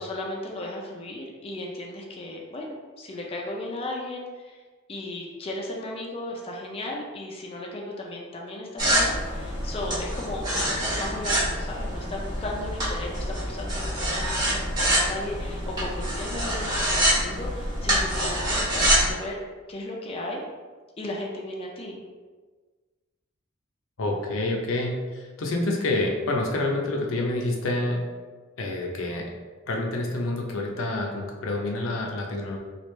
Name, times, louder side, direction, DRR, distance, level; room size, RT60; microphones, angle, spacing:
voice 1, 0.0-4.6 4.9-19.4 19.7-20.4 21.0-22.0, left 1 dB, 30° left, -1 dB, 0.4 m, -35 dB
sound 1, 8.8-19.1, equal, 20° right, 1.1 m, -26 dB
voice 2, 24.0-28.0 28.6-29.3 29.7-32.6, left 2 dB, 70° left, 0 dB, 0.6 m, -28 dB
3.2 x 2.4 x 3.1 m, 1.4 s
head